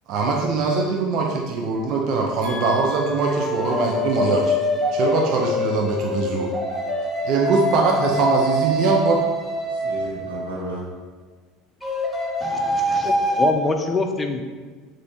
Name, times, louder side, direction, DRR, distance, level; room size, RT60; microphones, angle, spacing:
voice 1, 0.1-4.5 4.9-6.5 7.2-9.2, right 4 dB, 55° right, 0 dB, 0.6 m, -22 dB
sound 1, 1.8-2.0 3.3-10.7 11.8-13.5, left 1 dB, ahead, 1.1 m, -24 dB
voice 2, 2.4-3.4 9.7-10.9, left 1 dB, 90° right, -5 dB, 1.2 m, -34 dB
voice 3, 12.4-14.4, left 3 dB, 25° left, 5 dB, 0.5 m, -25 dB
6.7 x 2.6 x 2.8 m, 1.4 s
hypercardioid pair, 75°, 0 cm